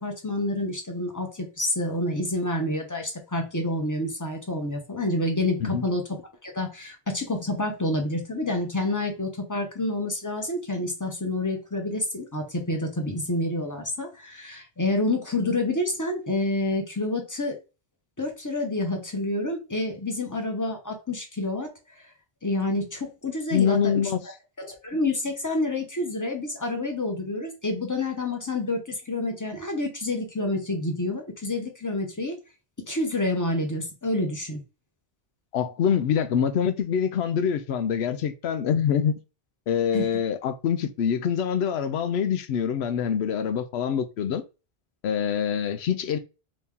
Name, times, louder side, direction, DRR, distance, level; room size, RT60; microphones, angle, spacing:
voice 1, 0.0-6.0 6.4-17.6 18.2-22.1 22.4-24.0 24.6-32.4 32.9-34.6 39.9-40.1, left 2 dB, 20° left, 0.8 m, -28 dB
voice 2, 23.5-24.2 35.5-39.1 39.7-44.4 45.0-46.2, left 8 dB, 85° left, 0.8 m, -25 dB
3.0 x 2.8 x 3.6 m
omnidirectional pair, 1.1 m